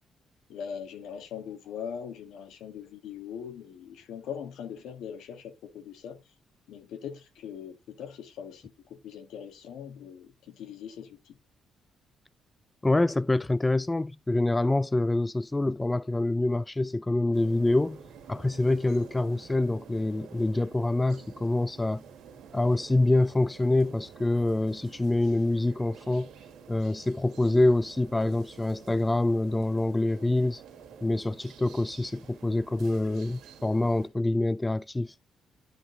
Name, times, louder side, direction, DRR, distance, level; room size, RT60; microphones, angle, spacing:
voice 1, 0.5-6.2 6.7-11.4, left 8 dB, 85° left, 2.1 m, -41 dB
voice 2, 12.8-18.0 18.3-22.0 22.5-26.3 26.7-30.6 31.0-35.1, left 2 dB, 15° left, 0.4 m, -26 dB
sound 1, 17.3-34.1, right 7 dB, 80° right, 1.9 m, -50 dB
10.5 x 4.1 x 4.0 m
cardioid pair, 90°, 0 cm